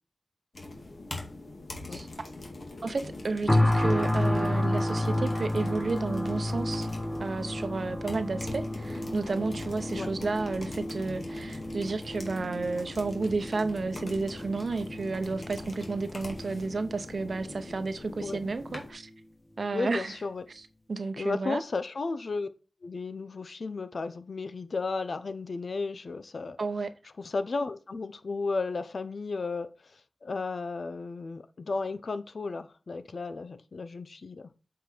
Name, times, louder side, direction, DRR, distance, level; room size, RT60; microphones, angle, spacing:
sound 1, 0.5-18.9, left 2 dB, 55° left, 2.2 m, -43 dB
voice 1, 2.8-6.9 7.2-19.1 19.6-20.2 20.5-21.6 26.6-26.9, right 3 dB, 70° right, 0.8 m, -32 dB
sound 2, 3.5-18.5 19.0-19.2, left 1 dB, 15° left, 1.0 m, -32 dB
voice 2, 19.7-20.4 21.2-22.5 22.8-26.6 27.2-34.5, left 3 dB, 70° left, 0.8 m, -34 dB
7.6 x 4.8 x 5.0 m
wide cardioid pair, 80°, 0 cm